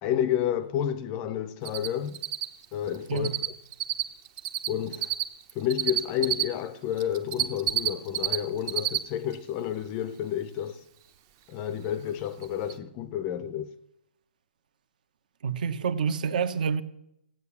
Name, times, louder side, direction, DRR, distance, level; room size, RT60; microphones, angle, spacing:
voice 1, 0.0-2.2 2.7-3.3 4.7-5.1 5.5-10.8 11.5-13.7, left 10 dB, 20° left, 0.5 m, -30 dB
Cricket, 1.6-1.9 2.1-6.4 7.0-8.4 8.6-9.0 9.3-9.4 11.9-12.0 12.4-12.5 12.7-12.8, right 12 dB, 25° right, 0.7 m, -27 dB
voice 2, 15.4-16.8, right 6 dB, 50° right, 1.0 m, -27 dB
15.0 x 8.7 x 7.1 m
hypercardioid pair, 165°, 6 cm